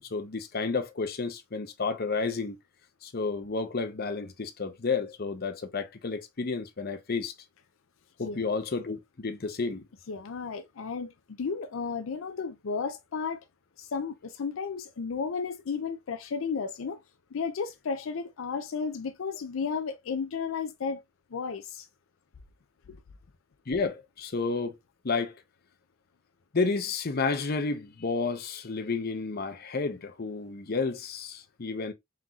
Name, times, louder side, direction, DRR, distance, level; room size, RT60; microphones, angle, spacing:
voice 1, 0.0-2.6 3.0-7.3 8.2-9.9 23.7-24.8 25.0-25.4 26.5-31.9, left 4 dB, 50° left, 0.7 m, -31 dB
voice 2, 10.1-13.4 13.8-17.0 17.3-21.0 21.3-21.9 22.9-23.0, left 5 dB, 85° left, 0.5 m, -33 dB
4.3 x 3.9 x 2.3 m
head